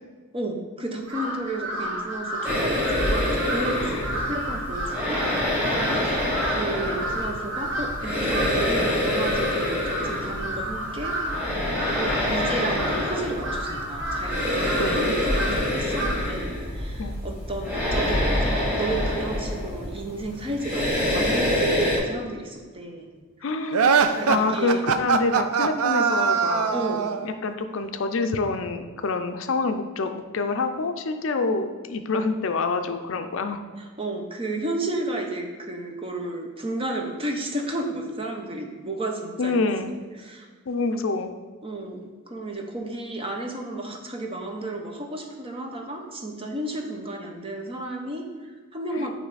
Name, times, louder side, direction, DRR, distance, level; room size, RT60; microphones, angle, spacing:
voice 1, 0.3-6.1 6.5-11.6 12.0-23.1 23.6-23.7 24.1-24.8 26.7-27.1 33.8-39.6 40.2-40.5 41.6-49.1, right 2 dB, 25° right, 2 dB, 0.7 m, -32 dB
Crow, 1.0-16.4, right 1 dB, 60° right, 1.3 m, -31 dB
sound 1, 2.4-22.0, left 1 dB, 10° right, 1.6 m, -26 dB
voice 2, 14.8-15.1 15.5-15.6 17.0-17.2 23.4-26.7 27.2-33.6 39.4-39.9 40.7-41.3 49.0-49.1, left 3 dB, 60° left, 7 dB, 0.4 m, -27 dB
sound 2, 23.7-27.3, right 6 dB, 85° right, 0.4 m, -22 dB
8.9 x 3.2 x 4.0 m, 1.5 s
head